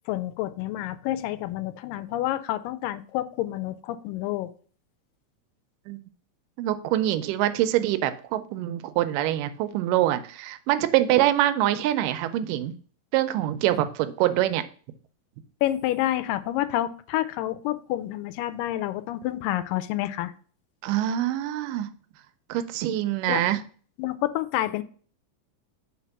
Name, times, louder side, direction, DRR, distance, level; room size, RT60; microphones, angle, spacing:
voice 1, 0.1-4.5 15.6-20.3 23.3-23.4 24.0-24.8, left 14 dB, 85° left, 13 dB, 2.2 m, -28 dB
voice 2, 6.6-12.7 13.1-14.6 20.8-21.9 22.5-23.6, right 13 dB, 85° right, 11 dB, 2.1 m, -24 dB
4.6 x 4.3 x 5.7 m, 0.43 s
omnidirectional pair, 3.8 m